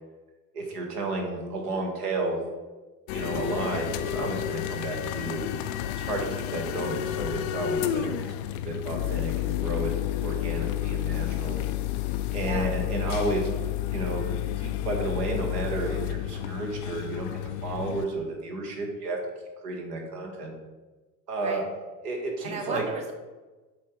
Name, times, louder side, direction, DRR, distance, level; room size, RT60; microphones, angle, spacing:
voice 1, 0.5-2.4 3.1-5.4 6.0-8.3 8.6-9.9 10.2-11.6 12.3-13.5 13.9-14.2 14.6-17.3 17.6-19.2 19.6-20.5 21.3-21.6 22.0-22.8, right 2 dB, 70° right, 1 dB, 1.6 m, -32 dB
sound 1, 3.1-18.1, left 12 dB, 40° left, 0.4 m, -30 dB
voice 2, 12.4-12.7 21.4-21.6 22.4-23.1, right 3 dB, 15° right, 4 dB, 0.7 m, -35 dB
7.9 x 3.2 x 5.0 m, 1.2 s
figure-of-eight pair, 70°, 49 cm